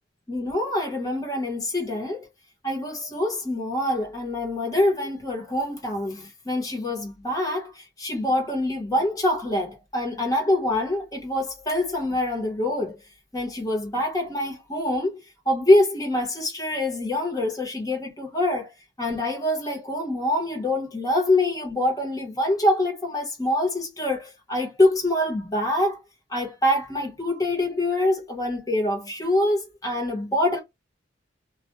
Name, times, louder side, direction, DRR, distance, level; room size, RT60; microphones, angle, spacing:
voice 1, 0.3-2.3 2.6-13.0 13.3-15.2 15.5-18.7 19.0-26.0 26.3-30.6, left 1 dB, 20° left, 0.8 m, -25 dB
2.2 x 2.2 x 2.9 m
head